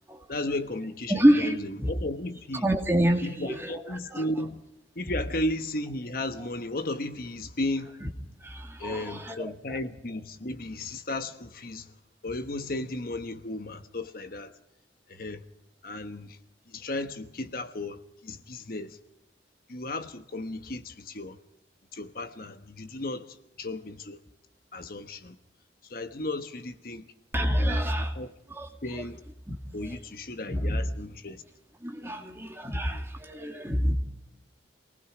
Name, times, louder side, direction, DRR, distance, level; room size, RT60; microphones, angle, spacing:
voice 1, 0.3-2.6 3.2-4.6 4.9-7.9 8.8-11.9 12.2-14.5 15.1-15.4 15.8-16.4 16.7-19.0 19.7-21.4 21.9-23.3 23.6-24.2 24.7-25.3 25.9-27.1 27.6-28.3 28.8-29.2 29.7-31.4 32.0-32.5 32.9-33.0, left 2 dB, 50° left, 1.2 m, -35 dB
voice 2, 1.1-1.9 2.6-4.2 6.4-6.5 8.0-8.1 8.4-9.4 27.3-28.1 28.5-28.7 29.5-29.6 29.9-30.0 30.5-30.9 31.8-33.9, equal, 15° right, 2.3 m, -27 dB
28.0 x 19.5 x 5.0 m
head